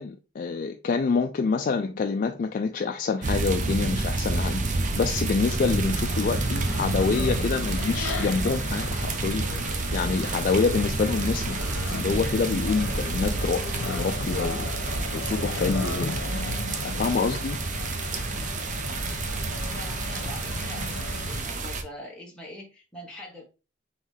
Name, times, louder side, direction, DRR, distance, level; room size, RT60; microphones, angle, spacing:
voice 1, 0.0-11.6 11.9-16.1 16.8-17.6, left 4 dB, 45° left, 0.3 m, -27 dB
sound 1, 3.2-21.8, right 3 dB, 40° right, 0.6 m, -29 dB
sound 2, 4.9-21.4, left 3 dB, 85° left, 0.8 m, -36 dB
voice 2, 19.5-23.4, left 1 dB, 5° left, 1.1 m, -43 dB
3.9 x 3.1 x 3.2 m
head